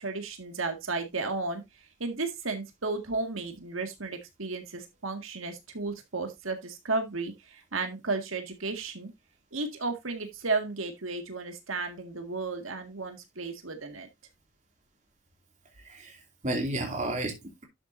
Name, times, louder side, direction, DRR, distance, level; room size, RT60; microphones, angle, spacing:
voice 1, 0.0-9.1 9.5-14.1, right 3 dB, 80° right, 1.9 m, -33 dB
voice 2, 15.8-17.6, right 1 dB, 35° right, 2.6 m, -32 dB
12.0 x 7.2 x 2.6 m
head